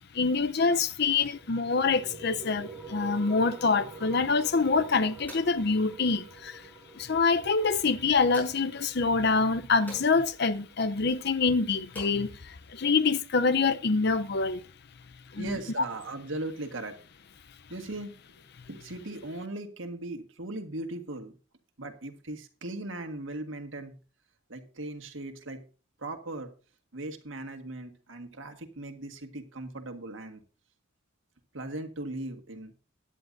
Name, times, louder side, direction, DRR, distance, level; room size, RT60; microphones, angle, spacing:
voice 1, 0.1-6.6 6.9-14.6 15.3-15.4, left 4 dB, 55° left, 0.7 m, -26 dB
sound 1, 1.0-12.0, right 3 dB, 10° right, 1.9 m, -48 dB
sound 2, 4.4-13.4, equal, 10° left, 5.6 m, -53 dB
voice 2, 15.4-17.0 17.7-18.4 18.7-21.4 21.8-24.0 24.5-25.6 26.0-26.5 26.9-30.4 31.5-32.7, right 2 dB, 70° right, 1.8 m, -38 dB
17.0 x 10.0 x 2.6 m
head